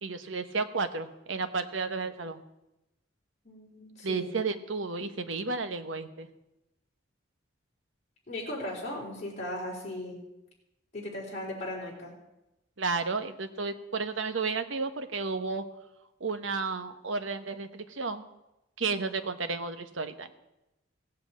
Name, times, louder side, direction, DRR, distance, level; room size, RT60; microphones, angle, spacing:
voice 1, 0.0-2.4 4.0-6.3 12.8-15.6 16.2-18.2 18.8-20.3, right 4 dB, 90° right, 9 dB, 1.1 m, -32 dB
voice 2, 3.4-4.3 8.3-10.2 10.9-12.1, left 1 dB, 40° left, -5 dB, 4.0 m, -37 dB
16.5 x 7.9 x 8.5 m, 0.94 s
head